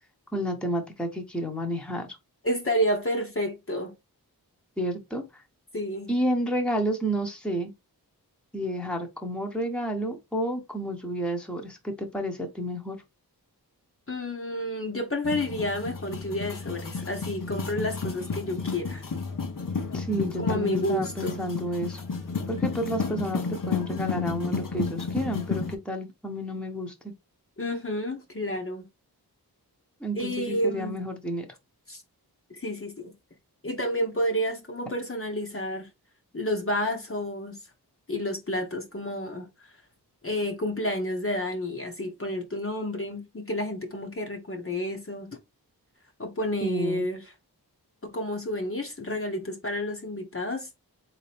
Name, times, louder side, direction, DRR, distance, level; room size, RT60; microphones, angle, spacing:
voice 1, 0.3-2.1 4.8-5.4 6.1-7.7 8.5-13.0 19.9-22.0 22.5-26.9 30.0-31.5 46.6-47.0, equal, ahead, 1.1 m, -30 dB
voice 2, 2.4-3.9 5.7-6.1 14.1-19.1 20.4-21.4 27.6-28.9 30.1-31.0 31.9-32.0 32.5-33.1 33.6-35.9 36.3-37.6 38.1-39.5 40.2-45.3 46.2-47.2 48.0-50.7, equal, 35° left, 1.1 m, -30 dB
sound 1, 15.2-25.7, left 5 dB, 55° left, 1.0 m, -32 dB
3.6 x 2.9 x 3.4 m
cardioid pair, 40°, 40 cm